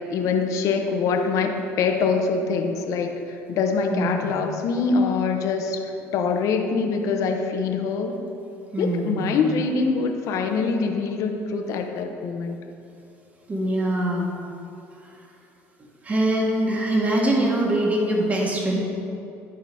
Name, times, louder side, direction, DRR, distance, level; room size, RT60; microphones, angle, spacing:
voice 1, 0.1-3.2 3.5-8.2 8.8-12.6, left 4 dB, 65° left, 4 dB, 0.9 m, -24 dB
voice 2, 3.9-4.3 8.7-9.4 13.5-14.3 16.0-18.8, right 1 dB, 25° right, -1 dB, 1.6 m, -23 dB
11.5 x 3.9 x 5.6 m, 2.7 s
supercardioid pair, 100°, 6 cm